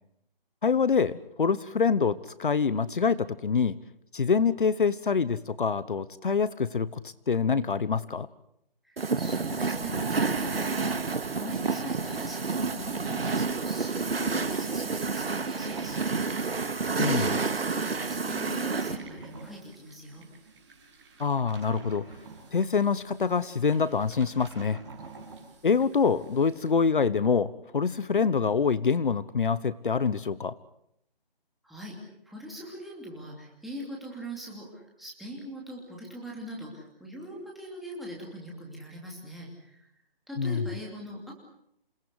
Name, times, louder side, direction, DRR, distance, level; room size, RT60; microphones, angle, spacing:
voice 1, 0.6-3.8 4.1-8.3 17.0-17.3 21.2-22.1 22.5-24.8 25.6-30.5 40.4-40.6, left 5 dB, 60° left, 16 dB, 1.1 m, -25 dB
voice 2, 8.8-16.0 17.0-20.3 31.6-32.0 32.2-39.9 40.3-41.3, equal, ahead, -4 dB, 2.8 m, -41 dB
sound 1, 9.0-19.0, right 4 dB, 90° right, 2.2 m, -29 dB
sound 2, 12.5-26.7, right 4 dB, 30° right, 7.2 m, -50 dB
28.5 x 19.0 x 8.2 m, 0.75 s
hypercardioid pair, 175°, 29 cm